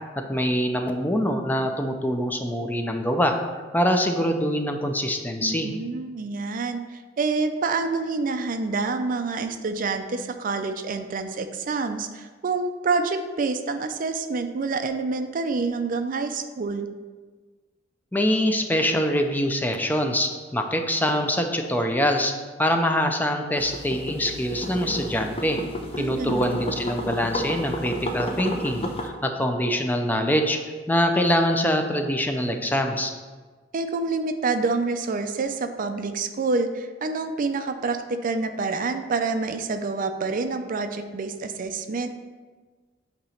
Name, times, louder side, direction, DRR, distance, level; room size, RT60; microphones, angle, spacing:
voice 1, 0.2-5.7 18.1-22.3 22.6-25.6 26.0-30.6 30.9-33.1, equal, 10° left, 4 dB, 0.5 m, -24 dB
voice 2, 5.4-16.9 26.0-26.6 33.7-42.1, right 4 dB, 50° right, 8 dB, 0.4 m, -27 dB
sound 1, 23.6-29.1, left 1 dB, 30° left, 0.8 m, -32 dB
8.6 x 3.0 x 5.6 m, 1.4 s
head